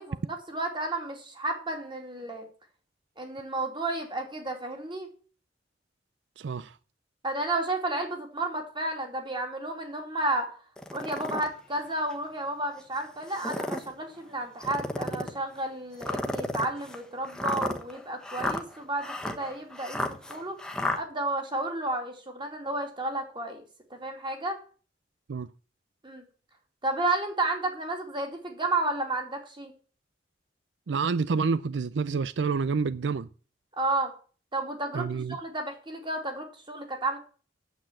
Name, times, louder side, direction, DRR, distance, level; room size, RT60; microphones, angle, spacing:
voice 1, 0.0-2.5 3.2-5.1 7.2-10.6 10.9-20.0 20.3-20.6 20.9-23.6 23.9-24.6 26.0-26.2 26.8-29.7 33.8-34.1 34.5-37.2, right 2 dB, 25° right, 2.8 m, -32 dB
voice 2, 6.4-6.8 25.3-25.5 30.9-33.3 34.9-35.4, right 5 dB, 75° right, 0.5 m, -28 dB
sound 1, 10.8-11.5 12.1-12.2 13.2-13.9 14.6-15.4 16.0-21.0, left 1 dB, 5° left, 1.2 m, -32 dB
9.0 x 7.9 x 8.8 m
head